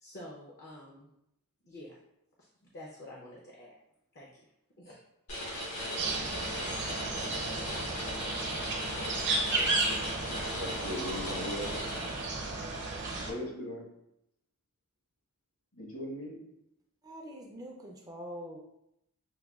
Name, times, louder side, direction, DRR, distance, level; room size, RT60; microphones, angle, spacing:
voice 1, 0.0-1.1 1.6-2.0 2.4-2.5 2.7-3.8 4.1-4.5 4.8-5.0, left 1 dB, 50° left, -3 dB, 0.6 m, -48 dB
sound 1, 5.3-12.6, equal, 90° left, 1.3 m, -38 dB
sound 2, 6.0-13.3, right 3 dB, 55° right, 0.7 m, -34 dB
voice 2, 10.5-11.8 13.3-13.9 15.8-16.4, left 1 dB, 65° left, -3 dB, 1.2 m, -39 dB
voice 3, 17.0-18.6, equal, 15° right, 0 dB, 0.4 m, -44 dB
5.7 x 2.2 x 2.3 m, 0.82 s
head